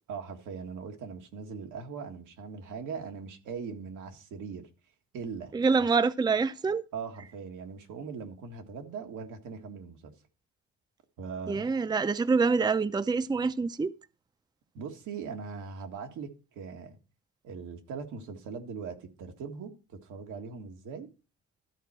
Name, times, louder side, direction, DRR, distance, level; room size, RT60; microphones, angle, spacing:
voice 1, 0.1-4.7 5.1-5.9 6.9-10.1 11.2-11.7 14.7-17.0 17.4-19.7 20.0-21.1, right 5 dB, 90° right, 1.8 m, -40 dB
voice 2, 5.5-6.8 11.5-13.9, right 4 dB, 15° right, 0.5 m, -26 dB
13.0 x 4.3 x 6.3 m
cardioid pair, 90°, 30 cm